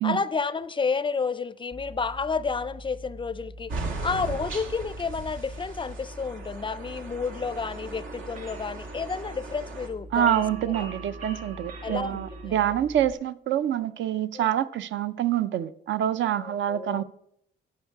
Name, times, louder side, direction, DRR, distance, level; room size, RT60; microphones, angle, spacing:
voice 1, 0.0-3.7 4.0-10.4 10.8-10.9 11.8-12.6 14.3-14.5 16.4-17.0, left 5 dB, 25° left, 0.4 m, -31 dB
sound 1, 1.7-13.1, equal, 20° right, 0.6 m, -44 dB
sound 2, 3.7-9.9, right 3 dB, 85° right, 1.6 m, -38 dB
sound 3, 7.4-12.5, right 5 dB, 45° right, 2.0 m, -45 dB
voice 2, 10.1-17.0, right 11 dB, 70° right, 0.5 m, -26 dB
13.0 x 4.5 x 4.6 m
cardioid pair, 90°, 20 cm